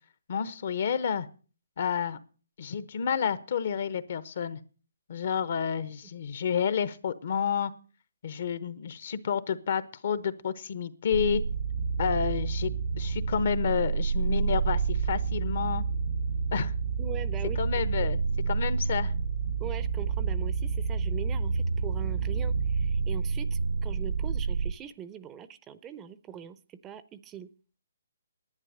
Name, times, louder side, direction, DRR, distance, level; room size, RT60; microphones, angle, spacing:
voice 1, 0.3-1.3 1.8-2.2 2.6-4.6 5.1-7.7 8.2-11.4 12.0-12.7 13.0-15.8 16.5-16.7 17.6-18.2 18.5-19.1, left 7 dB, 55° left, 15 dB, 1.0 m, -30 dB
sound 1, 11.1-24.7, right 5 dB, 70° right, 0.9 m, -29 dB
voice 2, 17.0-18.1 19.6-27.5, right 9 dB, 15° right, 15 dB, 0.6 m, -42 dB
11.0 x 9.4 x 6.7 m, 0.38 s
hypercardioid pair, 150°, 0 cm